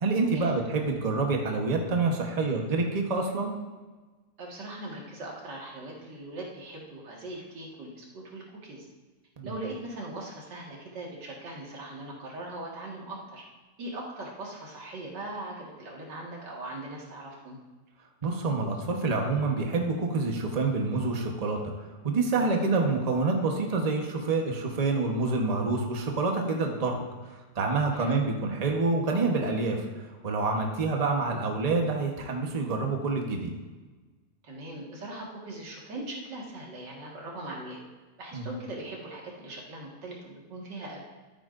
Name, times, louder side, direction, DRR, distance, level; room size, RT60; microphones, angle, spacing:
voice 1, 0.0-3.5 9.4-9.5 18.2-21.6 22.0-27.0 27.6-29.8 30.2-33.5 38.3-38.5, right 3 dB, 25° right, 1 dB, 1.0 m, -27 dB
voice 2, 4.4-8.9 9.4-13.4 13.8-17.6 22.5-22.7 27.9-28.2 34.4-37.8 38.2-41.1, right 2 dB, 90° right, -2 dB, 2.4 m, -40 dB
13.0 x 9.0 x 2.6 m, 1.3 s
omnidirectional pair, 1.8 m